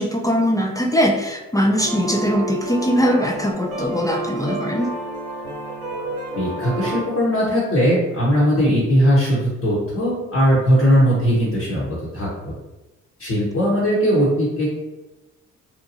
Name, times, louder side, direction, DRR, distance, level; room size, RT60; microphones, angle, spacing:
voice 1, 0.0-4.9, equal, 10° left, 2 dB, 0.4 m, -21 dB
sound 1, 1.8-7.0, right 2 dB, 90° right, 0.8 m, -29 dB
voice 2, 6.4-11.9 12.1-12.3 13.2-14.7, equal, 45° left, -8 dB, 1.1 m, -19 dB
2.9 x 2.2 x 2.7 m, 1.0 s
hypercardioid pair, 50°, 36 cm